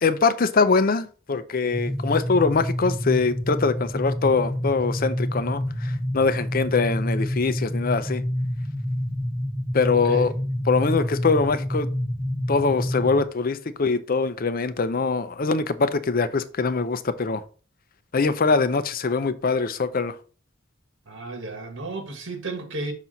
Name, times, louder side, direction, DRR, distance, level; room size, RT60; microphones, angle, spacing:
voice 1, 0.0-8.2 9.7-10.3 10.7-11.9 12.5-17.4 18.1-20.2, left 4 dB, 45° left, 0.6 m, -23 dB
sound 1, 1.7-13.2, left 1 dB, 10° left, 0.8 m, -28 dB
voice 2, 9.9-10.4 21.1-22.9, right 2 dB, 65° right, 1.3 m, -33 dB
6.0 x 5.8 x 4.0 m
head